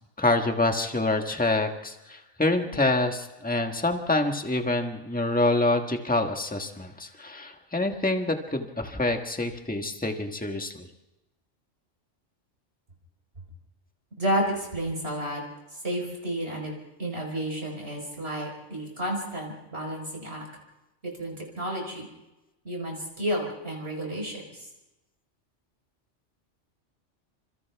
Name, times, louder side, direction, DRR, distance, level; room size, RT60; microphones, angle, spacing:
voice 1, 0.2-10.8, left 2 dB, 5° left, 4 dB, 1.5 m, -26 dB
voice 2, 14.2-15.4 15.8-16.7 17.0-20.4 21.2-22.1 22.7-24.4, equal, 55° right, 0 dB, 5.1 m, -31 dB
28.5 x 26.5 x 3.6 m, 0.99 s
omnidirectional pair, 1.3 m